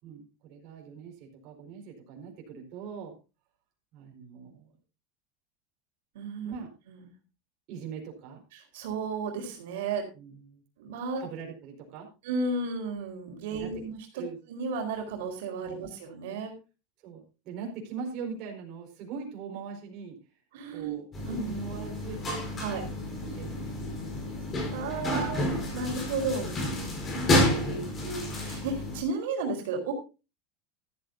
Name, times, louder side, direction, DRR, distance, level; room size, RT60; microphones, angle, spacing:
voice 1, 0.0-3.1 3.9-4.7 6.4-6.7 7.7-8.4 10.1-10.6 11.2-12.1 13.5-13.8 14.1-14.4 15.6-15.9 17.0-20.2 20.7-21.1 21.4-22.5 23.2-23.7 24.9-25.6 26.4-27.2 27.5-27.9, right 6 dB, 40° right, 1 dB, 4.8 m, -42 dB
voice 2, 6.1-6.5 6.9-7.0 8.7-10.1 10.8-11.2 12.2-14.0 14.5-16.5 20.5-21.0 21.3-21.6 22.6-22.8 24.7-25.4 25.7-26.5 27.1-29.9, right 4 dB, 75° right, 3 dB, 4.3 m, -33 dB
sound 1, 21.1-29.0, left 1 dB, 20° left, 4.6 m, -30 dB
14.0 x 13.5 x 2.7 m, 0.30 s
supercardioid pair, 175°, 0 cm